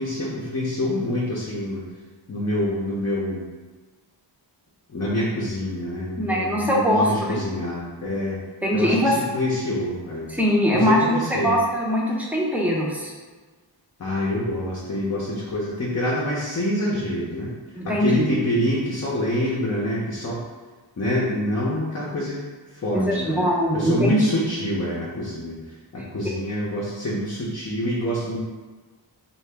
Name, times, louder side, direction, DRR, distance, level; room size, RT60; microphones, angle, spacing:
voice 1, 0.0-1.8 2.3-3.4 4.9-8.4 8.7-10.3 10.7-11.6 14.0-17.5 17.8-20.4 21.0-23.4 23.7-28.4, left 1 dB, 35° left, -6 dB, 0.6 m, -26 dB
voice 2, 6.2-7.4 8.6-9.1 10.3-11.2 11.4-13.1 17.7-18.3 22.9-24.2, equal, 5° right, -3 dB, 0.5 m, -21 dB
2.8 x 2.2 x 3.3 m, 1.3 s
wide cardioid pair, 75°, 44 cm